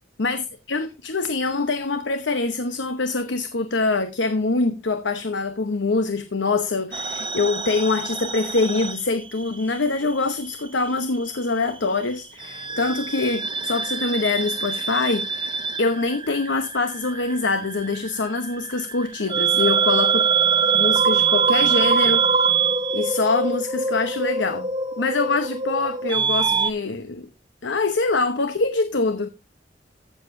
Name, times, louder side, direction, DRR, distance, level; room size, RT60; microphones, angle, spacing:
voice 1, 0.2-20.3 20.7-22.2 22.9-24.7 25.0-27.3 27.6-29.3, left 3 dB, 70° left, 0.9 m, -24 dB
sound 1, 6.9-9.8 10.0-11.2 12.4-26.7, right 6 dB, 25° right, 0.9 m, -24 dB
14.5 x 7.1 x 2.6 m
head